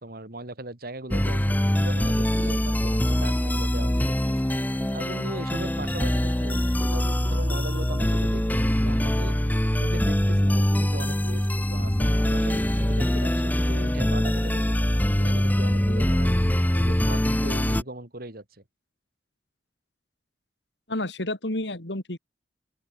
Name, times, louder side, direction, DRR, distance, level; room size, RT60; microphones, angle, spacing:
voice 1, 0.0-4.4 4.9-9.4 9.8-14.8 15.2-16.3 16.7-18.6, right 1 dB, 60° right, 3.0 m, -39 dB
sound 1, 1.1-17.8, equal, 10° left, 1.0 m, -23 dB
voice 2, 20.9-22.2, left 1 dB, 80° left, 3.7 m, -30 dB
open air
head